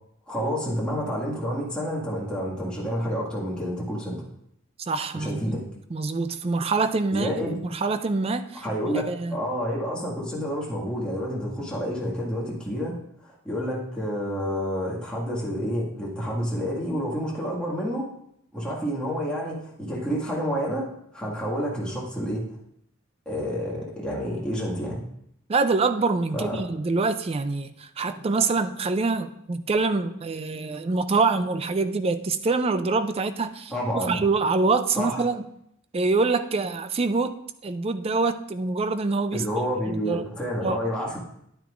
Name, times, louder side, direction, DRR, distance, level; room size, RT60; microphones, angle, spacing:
voice 1, 0.3-4.2 5.1-5.6 7.1-7.6 8.5-13.0 13.2-18.1 18.5-22.4 23.3-25.0 26.3-26.6 33.7-34.2 35.0-35.2 39.3-41.2, equal, 5° left, 1.8 m, -29 dB
voice 2, 4.8-5.6 5.9-8.6 9.1-9.4 25.5-33.7 34.1-35.4 35.9-37.4 37.6-39.4 39.9-40.2 40.6-40.8, right 3 dB, 25° right, 0.4 m, -25 dB
10.0 x 9.0 x 2.5 m
head